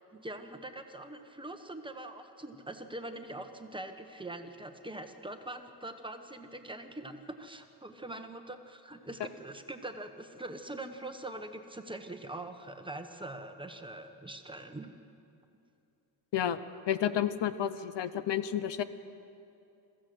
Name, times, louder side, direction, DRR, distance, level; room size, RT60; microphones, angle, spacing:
voice 1, 0.1-15.0, right 1 dB, 10° right, 6 dB, 1.0 m, -43 dB
voice 2, 16.9-18.8, left 10 dB, 75° left, 13 dB, 0.8 m, -31 dB
22.0 x 15.0 x 7.7 m, 2.6 s
wide cardioid pair, 160°, 43 cm